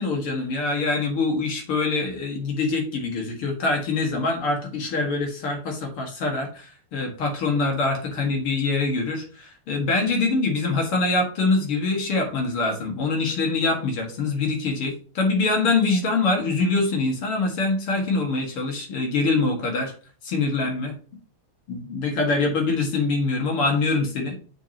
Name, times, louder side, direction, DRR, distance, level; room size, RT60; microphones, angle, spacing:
voice 1, 0.0-19.9 20.2-20.9 21.7-24.4, left 3 dB, 85° left, 1 dB, 2.8 m, -24 dB
7.5 x 6.5 x 2.9 m, 0.40 s
omnidirectional pair, 2.3 m